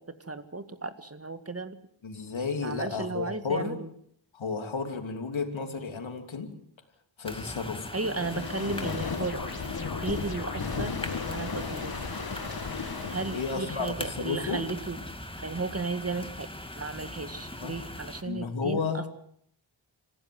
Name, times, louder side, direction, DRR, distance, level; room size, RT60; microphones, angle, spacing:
voice 1, 0.0-1.8 2.6-3.8 7.9-11.9 13.1-15.0 15.4-16.5 16.8-19.1, right 3 dB, 30° right, 10 dB, 2.0 m, -35 dB
voice 2, 2.0-3.8 4.3-6.5 7.2-7.9 8.6-8.7 13.3-14.7 17.6-17.7 18.2-19.1, left 5 dB, 80° left, 5 dB, 3.1 m, -32 dB
sound 1, 7.2-18.2, left 1 dB, 10° left, 2.2 m, -41 dB
sound 2, 8.0-13.8, left 5 dB, 50° left, 2.0 m, -35 dB
26.5 x 15.5 x 7.8 m, 0.66 s
wide cardioid pair, 80°, 46 cm